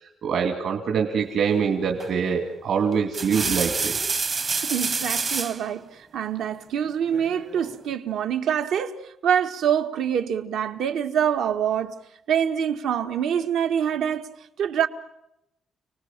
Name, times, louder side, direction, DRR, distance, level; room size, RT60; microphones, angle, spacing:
voice 1, 0.0-4.0, right 6 dB, 60° right, 2.6 m, -24 dB
sound 1, 2.0-2.3 2.9-5.6 7.1-7.8, right 4 dB, 35° right, 0.8 m, -28 dB
voice 2, 4.6-12.0 12.3-14.3 14.6-14.9, right 8 dB, 85° right, 1.7 m, -25 dB
30.0 x 20.0 x 7.5 m
cardioid pair, 160°, 0 cm